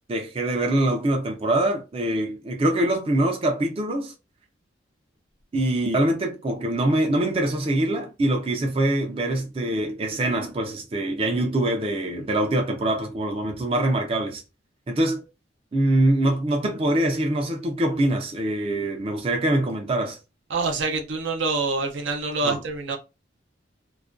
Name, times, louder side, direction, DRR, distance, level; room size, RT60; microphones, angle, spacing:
voice 1, 0.1-4.1 5.5-14.4 14.9-15.2 15.7-20.2 22.4-22.6, right 1 dB, 30° right, 0.4 m, -24 dB
voice 2, 20.5-23.0, right 3 dB, 80° right, 0.6 m, -26 dB
2.4 x 2.1 x 2.4 m
head